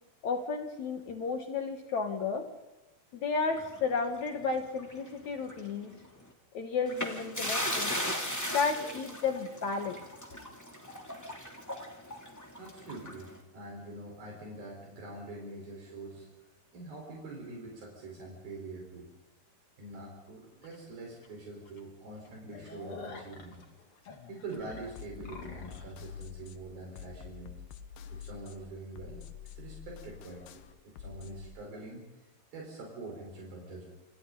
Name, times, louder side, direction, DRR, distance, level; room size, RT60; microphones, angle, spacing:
voice 1, 0.2-2.5 3.1-5.9 6.5-8.0 8.5-10.0, left 5 dB, 55° left, 5 dB, 2.5 m, -32 dB
sound 1, 3.5-5.1 5.4-5.6 6.9-13.4, equal, 5° left, 2.0 m, -37 dB
voice 2, 12.6-16.4 16.7-19.1 19.8-23.6 24.3-27.5 28.1-29.2 29.5-32.0 32.5-33.9, right 2 dB, 70° right, 0 dB, 6.2 m, -44 dB
sound 2, 20.6-20.8 21.2-21.3 21.7-21.8 22.1-25.9, left 4 dB, 40° left, 2.9 m, -47 dB
sound 3, 24.6-31.5, left 7 dB, 80° left, 3.1 m, -47 dB
28.5 x 27.0 x 4.0 m, 1.0 s
omnidirectional pair, 4.4 m